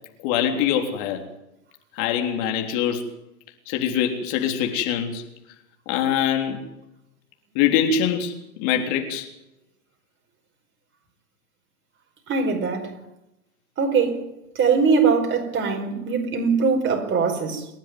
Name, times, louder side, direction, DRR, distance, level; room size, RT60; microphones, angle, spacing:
voice 1, 0.2-1.2 1.9-3.1 3.7-5.2 5.9-6.7 7.6-9.3, left 8 dB, 45° left, 3.5 m, -23 dB
voice 2, 12.3-13.0 13.8-14.3 14.6-17.7, right 5 dB, 25° right, 5.1 m, -22 dB
28.5 x 10.5 x 9.5 m
figure-of-eight pair, 95°, 42 cm